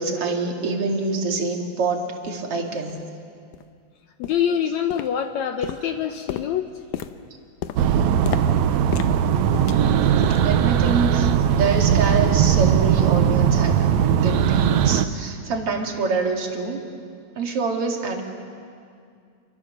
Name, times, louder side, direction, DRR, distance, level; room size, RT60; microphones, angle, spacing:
voice 1, 0.0-3.0 10.4-13.8 14.1-16.9 17.4-18.2, right 4 dB, 45° right, 1 dB, 3.1 m, -25 dB
sound 1, 2.2-2.3 2.9-3.0 3.5-3.7 4.2-4.5 4.9-5.4 5.6-10.6 10.9-11.2 11.5-11.7 12.2-12.3, left 10 dB, 85° left, 2.4 m, -34 dB
voice 2, 4.2-6.7, left 8 dB, 70° left, 6 dB, 1.9 m, -25 dB
sound 2, 7.8-15.1, right 9 dB, 70° right, 2.0 m, -19 dB
29.5 x 24.0 x 6.7 m, 2.3 s
omnidirectional pair, 3.6 m